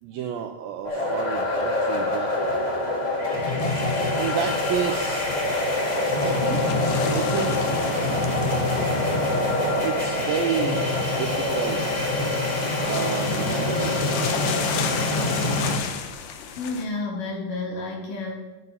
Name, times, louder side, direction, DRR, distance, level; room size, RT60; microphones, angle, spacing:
voice 1, 0.0-2.3 3.4-3.7 4.1-5.3 6.2-7.7 9.8-11.8 12.7-14.5, right 9 dB, 90° right, 5 dB, 2.0 m, -31 dB
sound 1, 0.8-15.8, left 2 dB, 25° left, 0.9 m, -25 dB
sound 2, 3.6-16.9, left 8 dB, 75° left, 2.0 m, -35 dB
voice 2, 16.5-18.3, left 3 dB, 60° left, -1 dB, 2.9 m, -31 dB
19.0 x 8.2 x 3.5 m, 1.1 s
omnidirectional pair, 5.0 m